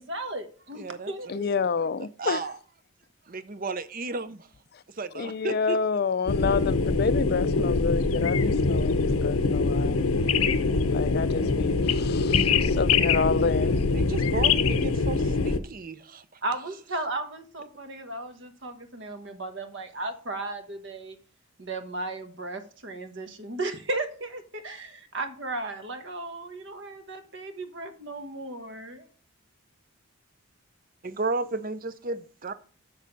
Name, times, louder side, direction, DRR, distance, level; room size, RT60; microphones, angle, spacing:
voice 1, 0.0-1.5 16.4-21.2 21.6-29.1, right 2 dB, 55° right, 1.3 m, -35 dB
voice 2, 0.8-1.1 2.2-2.6 3.3-4.5 4.9-5.8 13.6-16.4 31.0-32.5, right 3 dB, 40° right, 0.6 m, -33 dB
voice 3, 1.3-2.4 5.2-10.0 10.9-13.8, left 5 dB, 50° left, 0.4 m, -29 dB
sound 1, 6.3-15.6, left 4 dB, 85° left, 0.7 m, -24 dB
7.2 x 6.7 x 5.2 m
head